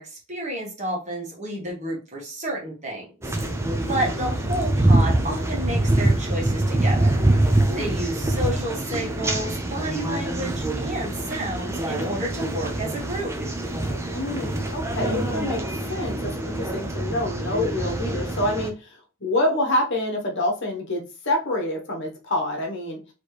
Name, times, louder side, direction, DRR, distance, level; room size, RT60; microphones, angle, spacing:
voice 1, 0.0-3.4 3.9-7.2 7.7-13.3, right 1 dB, 30° right, -3 dB, 1.7 m, -31 dB
sound 1, 3.2-18.7, right 1 dB, 10° right, 0.5 m, -24 dB
voice 2, 7.7-8.0 14.1-15.6 15.9-23.0, left 1 dB, 55° left, 1 dB, 1.2 m, -27 dB
4.3 x 3.2 x 3.3 m, 0.32 s
head